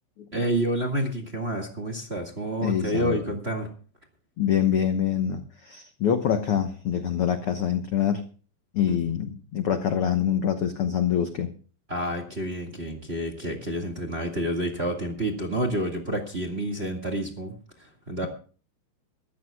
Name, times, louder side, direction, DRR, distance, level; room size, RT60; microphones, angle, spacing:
voice 1, 0.3-3.7 8.9-9.0 11.9-18.3, right 1 dB, 25° right, 2 dB, 1.6 m, -29 dB
voice 2, 2.6-3.2 4.4-8.2 8.7-11.5, left 9 dB, 75° left, 8 dB, 1.3 m, -25 dB
24.0 x 14.0 x 2.3 m, 0.39 s
omnidirectional pair, 4.1 m